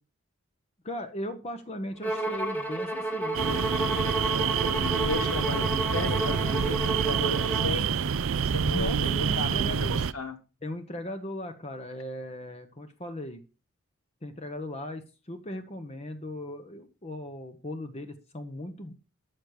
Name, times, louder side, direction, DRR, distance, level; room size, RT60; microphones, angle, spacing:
voice 1, 0.8-3.7 8.7-10.0 10.6-13.4 14.2-18.9, left 1 dB, 30° left, 6 dB, 1.0 m, -38 dB
Bowed string instrument, 2.0-7.8, right 1 dB, 10° left, 1.6 m, -31 dB
sound 1, 3.3-10.1, right 6 dB, 65° right, 0.5 m, -27 dB
voice 2, 4.7-8.0 8.4-10.3, left 1 dB, 80° left, 7 dB, 2.0 m, -35 dB
13.5 x 6.5 x 4.8 m, 0.31 s
head